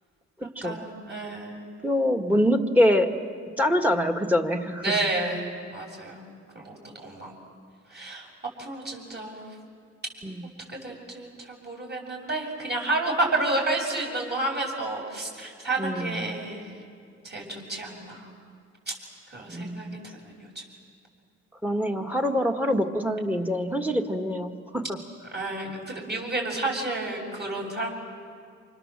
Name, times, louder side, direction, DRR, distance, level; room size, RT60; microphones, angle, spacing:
voice 1, 0.6-1.7 4.8-5.4 5.7-6.2 6.5-7.4 7.9-8.3 8.6-9.4 10.7-16.7 17.2-18.3 18.9-19.0 19.3-20.6 25.3-27.9, right 2 dB, 35° right, -1 dB, 7.4 m, -30 dB
voice 2, 1.8-3.1 3.6-4.8 10.2-10.4 15.8-16.2 19.5-20.0 21.6-25.0, equal, 5° right, 6 dB, 2.0 m, -24 dB
29.0 x 26.5 x 7.6 m, 2.2 s
cardioid pair, 90°, 30 cm